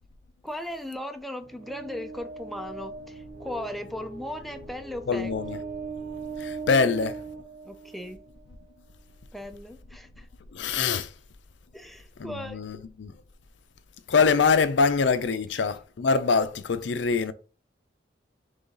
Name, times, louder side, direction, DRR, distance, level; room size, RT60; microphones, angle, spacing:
voice 1, 0.4-5.6 6.8-6.9 7.6-8.2 9.3-10.3 11.7-12.7 15.5-15.6, left 1 dB, ahead, 0.4 m, -37 dB
sound 1, 1.4-8.4, right 4 dB, 80° right, 2.0 m, -39 dB
voice 2, 5.1-5.6 6.4-7.2 10.5-11.1 12.2-13.1 14.1-17.3, left 5 dB, 85° left, 0.5 m, -24 dB
3.8 x 3.4 x 3.9 m
head